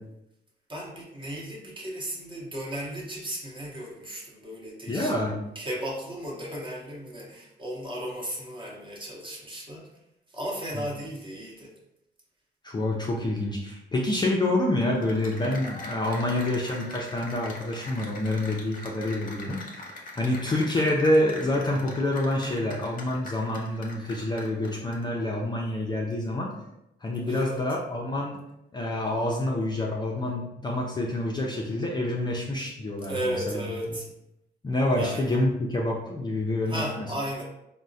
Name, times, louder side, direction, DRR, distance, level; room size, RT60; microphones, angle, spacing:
voice 1, 0.7-5.1 5.5-9.9 10.3-11.7 22.4-22.8 27.3-27.6 33.1-34.1 35.0-35.3 36.7-37.4, equal, 25° right, -2 dB, 0.9 m, -35 dB
voice 2, 4.9-5.4 10.7-10.9 12.6-19.8 20.1-26.5 27.0-28.4 28.7-33.6 34.6-37.1, left 1 dB, 20° left, -2 dB, 0.4 m, -27 dB
Cheering / Applause, 14.8-25.2, left 2 dB, 45° left, 0.8 m, -42 dB
3.5 x 2.0 x 2.6 m, 0.86 s
cardioid pair, 90°, 20 cm